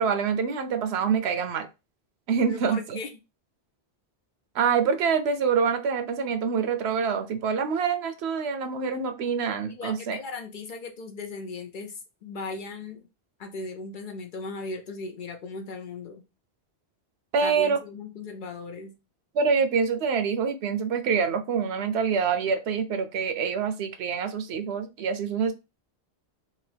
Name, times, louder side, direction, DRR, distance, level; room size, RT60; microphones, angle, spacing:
voice 1, 0.0-1.7 2.3-3.0 4.5-10.2 17.3-17.8 19.3-25.5, right 6 dB, 80° right, 0.9 m, -26 dB
voice 2, 2.5-3.1 9.7-13.1 13.4-16.2 17.4-18.9, left 3 dB, 60° left, 0.6 m, -37 dB
2.8 x 2.6 x 3.2 m
omnidirectional pair, 1.1 m